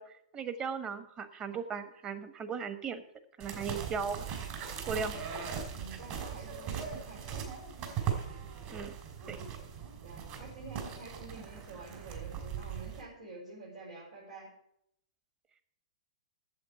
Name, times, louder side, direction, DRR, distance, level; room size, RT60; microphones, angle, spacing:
voice 1, 0.0-3.0 3.4-4.2 4.9-5.2 8.7-8.9 9.3-9.4, right 6 dB, 25° right, 10 dB, 1.2 m, -37 dB
sound 1, 3.4-13.0, right 7 dB, 45° right, 2.9 m, -39 dB
voice 2, 4.9-5.2 5.7-7.4 9.2-9.6 10.0-14.5, right 2 dB, 90° right, -8 dB, 5.2 m, -48 dB
8.6 x 7.7 x 8.7 m, 0.75 s
hypercardioid pair, 115°, 3 cm